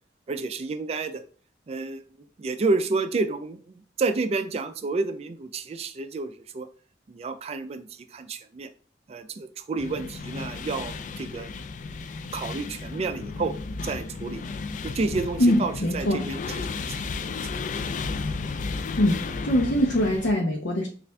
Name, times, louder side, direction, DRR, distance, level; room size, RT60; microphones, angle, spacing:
voice 1, 0.3-1.2 1.7-2.0 2.4-6.7 7.1-8.7 9.1-11.5 12.3-13.5 13.8-14.4 14.8-16.9, right 3 dB, 35° right, 9 dB, 0.3 m, -30 dB
sound 1, 9.8-20.3, left 4 dB, 45° left, 0.3 m, -33 dB
voice 2, 15.4-16.2 19.0-20.9, left 1 dB, 75° left, -1 dB, 0.7 m, -23 dB
6.6 x 2.5 x 2.2 m, 0.43 s
head